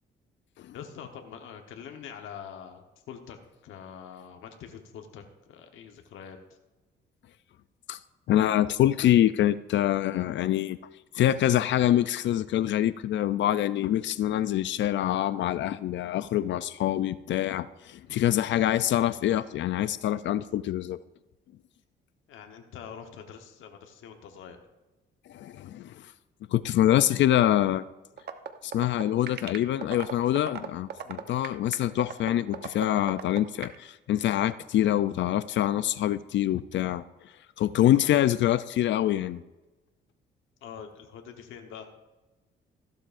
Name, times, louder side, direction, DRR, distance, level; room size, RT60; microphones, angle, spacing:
voice 1, 0.7-6.4 22.3-24.6 31.0-31.3 38.0-38.1 40.6-41.9, left 7 dB, 85° left, 4 dB, 1.1 m, -44 dB
voice 2, 8.3-10.8 11.1-21.0 25.3-25.9 26.5-27.8 28.6-37.0 37.6-39.4, left 12 dB, 65° left, 15 dB, 0.4 m, -25 dB
sound 1, 28.2-33.8, right 8 dB, 55° right, 0.9 m, -35 dB
15.0 x 12.0 x 2.5 m, 1.1 s
cardioid pair, 90°, 20 cm